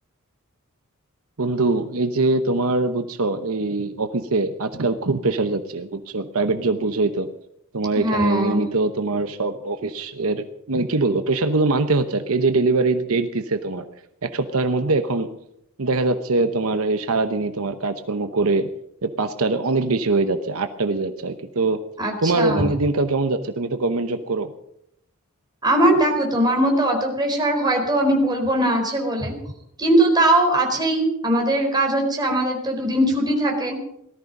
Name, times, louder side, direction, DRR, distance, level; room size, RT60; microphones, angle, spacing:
voice 1, 1.4-7.3 7.7-13.9 14.2-15.3 15.8-18.7 19.0-21.8 22.2-24.5, right 3 dB, 70° right, 8 dB, 1.0 m, -23 dB
voice 2, 7.9-8.6 22.0-22.7 25.6-29.3 29.8-33.8, right 1 dB, 20° right, 2 dB, 4.4 m, -20 dB
18.5 x 13.5 x 5.4 m, 0.76 s
head